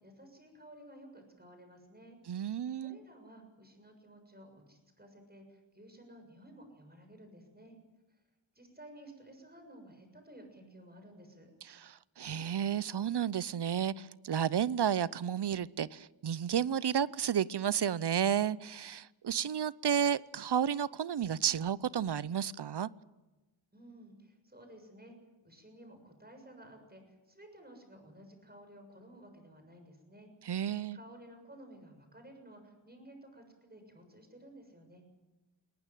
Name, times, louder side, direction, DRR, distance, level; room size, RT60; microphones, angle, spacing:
voice 1, 0.0-2.2 2.8-7.8 8.1-8.2 8.6-11.5 23.7-25.2 25.4-30.3 30.9-35.0, right 1 dB, 20° right, 6.9 m, -54 dB
voice 2, 2.3-3.0 11.7-22.9 30.5-31.0, right 8 dB, 55° right, 0.7 m, -32 dB
22.0 x 19.0 x 9.1 m
wide cardioid pair, 75°, 47 cm